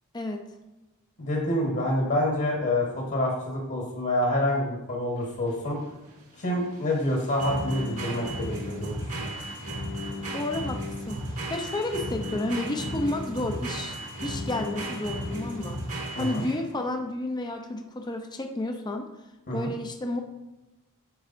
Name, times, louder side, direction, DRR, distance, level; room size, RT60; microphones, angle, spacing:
voice 1, 0.1-0.5 10.3-10.8 11.1-14.0 14.2-19.1 19.5-20.2, left 2 dB, 20° left, 4 dB, 0.6 m, -31 dB
voice 2, 1.2-5.8 6.4-9.3 16.1-16.4 19.5-19.7, left 1 dB, 50° left, -2 dB, 1.3 m, -27 dB
sound 1, 5.2-16.8, equal, 75° right, 2.1 m, -34 dB
9.5 x 4.6 x 2.6 m, 1.0 s
head